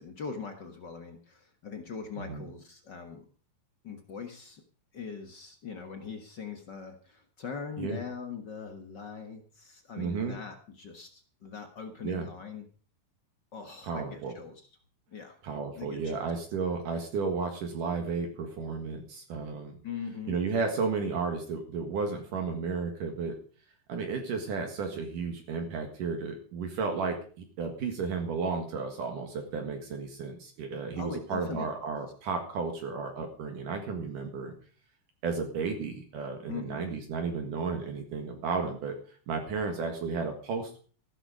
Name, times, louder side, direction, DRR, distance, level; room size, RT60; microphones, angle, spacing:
voice 1, 0.0-3.3 3.8-4.6 4.9-12.6 13.5-14.6 15.1-15.4 15.7-16.3 19.8-20.4 31.0-31.7 36.5-37.0, left 6 dB, 55° left, 5 dB, 1.2 m, -41 dB
voice 2, 2.2-2.5 7.8-8.0 10.0-10.4 12.0-12.3 13.8-14.3 15.4-19.8 20.3-23.4 23.9-34.5 35.2-40.8, right 4 dB, 65° right, 4 dB, 3.1 m, -33 dB
15.0 x 11.0 x 5.0 m, 0.42 s
omnidirectional pair, 4.3 m